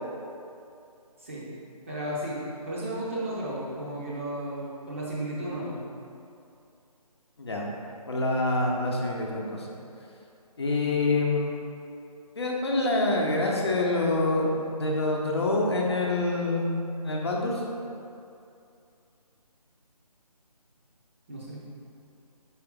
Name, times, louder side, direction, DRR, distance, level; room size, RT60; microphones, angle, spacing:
voice 1, 1.9-2.4 2.6-5.8 21.3-21.6, right 1 dB, 20° right, -7 dB, 0.6 m, -33 dB
voice 2, 8.1-9.7 10.6-11.5 12.4-16.7 17.0-17.6, left 2 dB, 40° left, -2 dB, 0.8 m, -26 dB
5.8 x 4.7 x 3.5 m, 2.6 s
figure-of-eight pair, 155°, 20 cm